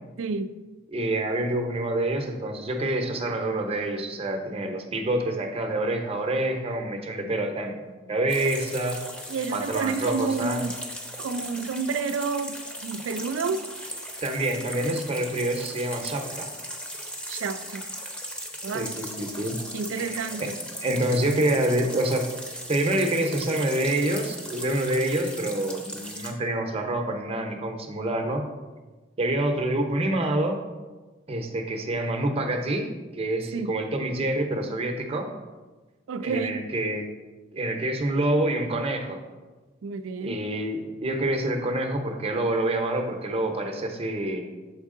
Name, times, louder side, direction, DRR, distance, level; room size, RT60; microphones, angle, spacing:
voice 1, 0.2-0.5 9.3-10.8 11.2-13.7 17.3-17.9 18.6-18.9 19.7-20.6 33.5-33.8 36.1-36.6 39.8-40.5, right 4 dB, 75° right, 11 dB, 0.4 m, -30 dB
voice 2, 0.9-9.0 9.5-10.7 14.2-16.5 18.7-19.6 20.0-20.5 20.8-22.3 22.7-28.4 29.2-30.6 31.3-32.9 33.1-35.3 36.2-37.1 37.5-39.2 40.2-44.4, right 1 dB, 30° right, 4 dB, 0.7 m, -27 dB
sound 1, 8.3-26.3, equal, 5° left, 0.7 m, -38 dB
7.2 x 4.5 x 3.7 m, 1.3 s
head